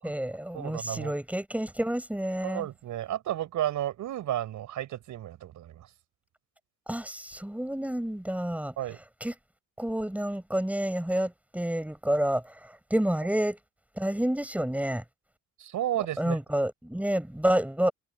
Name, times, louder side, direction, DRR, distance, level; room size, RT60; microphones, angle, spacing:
voice 1, 0.0-2.7 6.9-8.7 9.2-9.3 9.8-13.6 14.0-15.0 16.2-17.9, right 1 dB, 5° right, 5.8 m, -29 dB
voice 2, 0.5-1.2 2.4-5.9 8.8-9.0 15.6-16.4, right 12 dB, 80° right, 6.3 m, -32 dB
cardioid pair, 90°, 30 cm